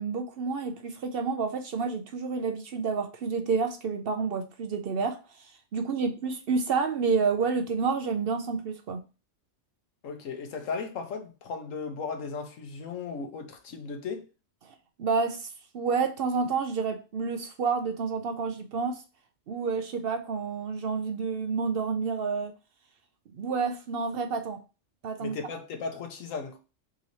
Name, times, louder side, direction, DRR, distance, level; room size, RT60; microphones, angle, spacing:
voice 1, 0.0-5.5 5.7-9.0 14.6-15.5 15.7-19.0 19.5-22.5 23.3-24.6 25.0-25.4, right 5 dB, 60° right, 0.7 m, -29 dB
voice 2, 10.0-14.3 25.2-26.6, left 5 dB, 85° left, 1.3 m, -36 dB
3.8 x 3.0 x 4.0 m
omnidirectional pair, 1.3 m